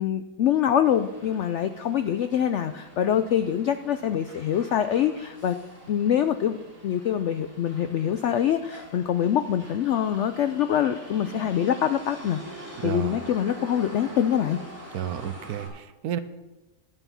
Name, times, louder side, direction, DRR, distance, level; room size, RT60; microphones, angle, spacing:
voice 1, 0.0-5.6 5.9-6.6 6.8-12.4 12.8-14.6, left 9 dB, 80° left, 10 dB, 0.6 m, -24 dB
Motor vehicle (road), 0.8-15.7, equal, 10° right, 3.1 m, -45 dB
voice 2, 12.8-13.2 14.9-16.2, right 9 dB, 70° right, 13 dB, 1.2 m, -31 dB
11.0 x 9.2 x 5.6 m, 1.1 s
omnidirectional pair, 1.7 m